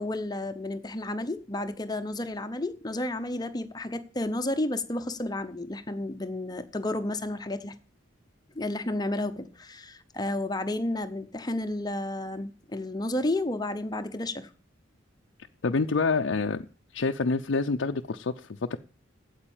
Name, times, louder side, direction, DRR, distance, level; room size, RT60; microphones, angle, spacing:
voice 1, 0.0-7.7 8.5-14.5, left 1 dB, 20° left, 0.7 m, -31 dB
voice 2, 15.6-16.7 16.9-18.8, left 4 dB, 65° left, 0.5 m, -27 dB
8.8 x 8.0 x 8.7 m
head